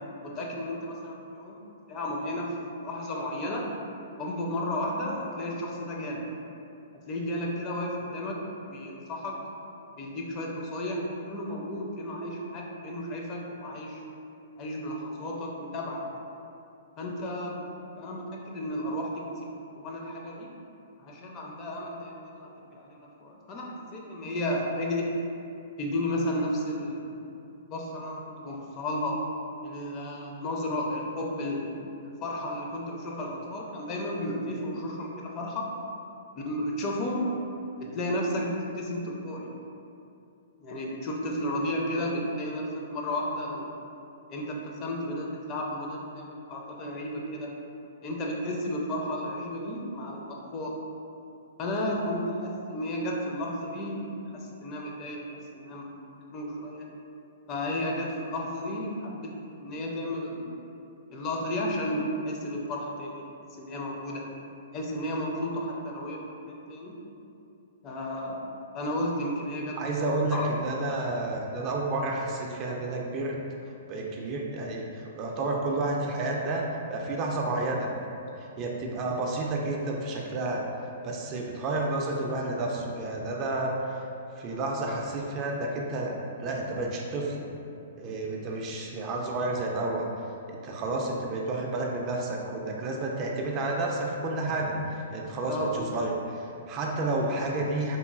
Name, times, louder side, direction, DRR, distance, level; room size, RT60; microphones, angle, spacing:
voice 1, 0.2-1.6 1.9-3.7 4.2-6.2 6.9-9.4 9.9-14.0 14.6-16.0 17.0-17.6 18.0-20.5 21.0-25.1 25.8-27.2 27.7-29.2 29.6-35.7 36.4-37.3 37.8-39.5 40.6-43.7 44.3-47.5 48.0-50.8 51.6-55.3 55.5-55.9 56.3-56.9 57.5-59.3 59.6-60.6 61.1-63.3 63.6-64.2 64.7-66.9 67.8-68.4 68.7-70.5 95.5-95.7, left 1 dB, 35° left, -2 dB, 0.4 m, -33 dB
voice 2, 69.8-73.4 73.9-77.9 78.4-80.6 81.0-83.7 84.4-86.1 86.4-87.5 88.0-90.1 90.5-98.0, right 2 dB, 35° right, -1 dB, 0.3 m, -30 dB
3.0 x 2.4 x 2.3 m, 2.7 s
hypercardioid pair, 120°, 0 cm